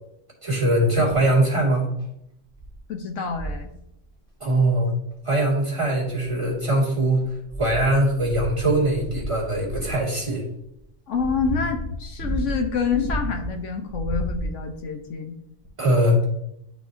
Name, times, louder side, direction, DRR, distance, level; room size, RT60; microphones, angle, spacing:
voice 1, 0.4-1.9 4.4-4.9 5.2-10.4 15.8-16.2, right 1 dB, 25° right, -5 dB, 2.2 m, -21 dB
sound 1, 2.0-2.1 2.6-2.8 3.3-3.7 5.1-5.2 6.0-6.7 7.2-10.1 10.8-13.5 13.9-14.8 15.6-15.7, right 1 dB, 5° left, 2.2 m, -32 dB
voice 2, 2.9-3.7 11.1-15.4, left 5 dB, 70° left, 5 dB, 1.1 m, -27 dB
11.5 x 4.1 x 2.6 m, 0.80 s
omnidirectional pair, 1.3 m